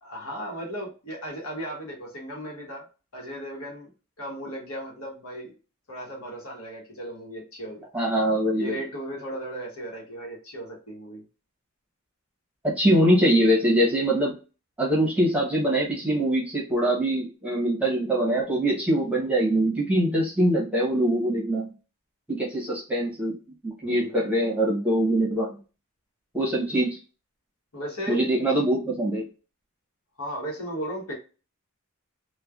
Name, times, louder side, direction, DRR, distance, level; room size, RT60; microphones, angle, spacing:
voice 1, 0.0-2.9 3.1-3.9 4.2-5.5 5.9-7.8 8.6-11.2 23.8-24.1 26.7-26.8 27.7-28.2 30.2-31.1, equal, 75° left, -2 dB, 1.1 m, -36 dB
voice 2, 7.9-8.8 12.6-14.3 14.8-21.7 22.3-23.3 23.6-25.6 26.3-27.0 28.1-29.2, right 1 dB, 5° right, -3 dB, 0.8 m, -23 dB
3.1 x 2.2 x 2.3 m, 0.34 s
head